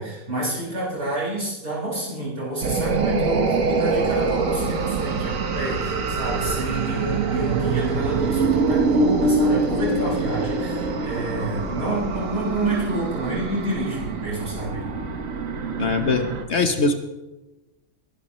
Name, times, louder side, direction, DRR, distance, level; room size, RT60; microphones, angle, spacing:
voice 1, 0.0-14.8, right 2 dB, 50° right, -7 dB, 6.3 m, -28 dB
sound 1, 2.6-16.4, right 3 dB, 75° right, 1.6 m, -24 dB
voice 2, 15.8-16.2 16.5-17.0, left 3 dB, 55° left, 7 dB, 1.2 m, -21 dB
21.5 x 12.5 x 3.1 m, 1.0 s
omnidirectional pair, 1.4 m